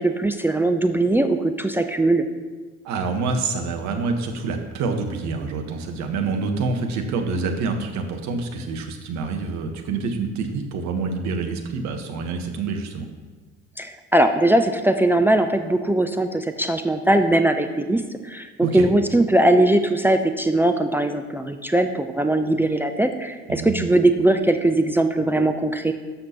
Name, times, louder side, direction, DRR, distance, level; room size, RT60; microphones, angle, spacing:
voice 1, 0.0-2.2 13.8-25.9, right 1 dB, 5° right, 8 dB, 0.4 m, -20 dB
voice 2, 2.8-13.1 18.6-18.9 23.5-23.9, right 4 dB, 50° right, 4 dB, 1.2 m, -27 dB
12.5 x 5.9 x 2.9 m, 1.4 s
figure-of-eight pair, 55°, 35 cm